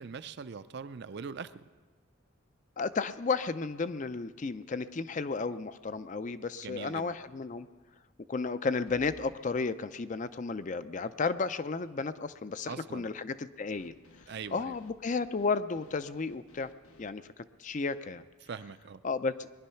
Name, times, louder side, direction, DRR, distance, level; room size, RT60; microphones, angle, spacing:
voice 1, 0.0-1.7 6.6-7.2 12.7-13.1 14.3-14.8 18.4-19.0, right 5 dB, 50° right, 13 dB, 0.5 m, -42 dB
voice 2, 2.8-7.7 8.3-13.9 14.5-16.7 17.0-17.2 17.6-18.2 19.0-19.5, left 4 dB, 35° left, 13 dB, 0.4 m, -33 dB
sound 1, 5.8-6.2 6.6-6.7 8.9-9.4 13.7-17.1, left 1 dB, 90° left, 1.3 m, -57 dB
21.0 x 10.5 x 5.7 m, 1.3 s
head